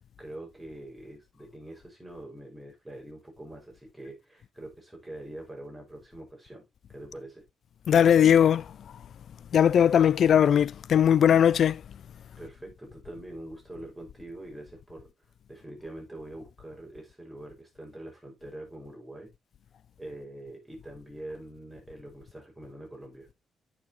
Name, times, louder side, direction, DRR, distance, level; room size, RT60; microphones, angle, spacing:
voice 1, 0.2-7.4 12.4-15.1 15.5-19.3 20.0-23.3, right 1 dB, 5° right, 5.7 m, -44 dB
voice 2, 7.9-8.7 9.5-11.8, left 9 dB, 60° left, 0.4 m, -19 dB
9.4 x 6.6 x 3.0 m
cardioid pair, 90°, 0 cm